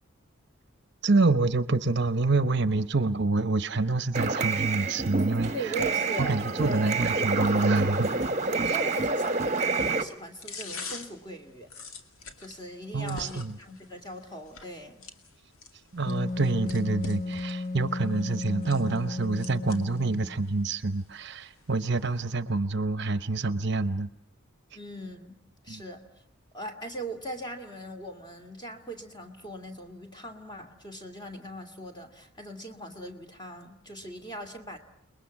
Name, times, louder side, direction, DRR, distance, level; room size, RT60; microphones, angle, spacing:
voice 1, 1.0-5.5 6.2-8.1 8.7-8.8 12.9-13.5 15.9-24.1 25.7-25.8, right 3 dB, 50° right, 12 dB, 0.9 m, -27 dB
sound 1, 4.1-10.0, right 3 dB, 30° right, 1.1 m, -28 dB
voice 2, 5.5-6.9 8.5-11.7 12.4-15.1 24.7-26.0 26.5-34.8, right 2 dB, 20° left, 4 dB, 2.5 m, -40 dB
sound 2, 6.4-22.3, left 4 dB, 75° left, 2.4 m, -48 dB
Wind instrument woodwind instrument, 16.1-20.5, left 2 dB, 40° left, 1.2 m, -34 dB
29.5 x 21.5 x 7.2 m, 0.73 s
head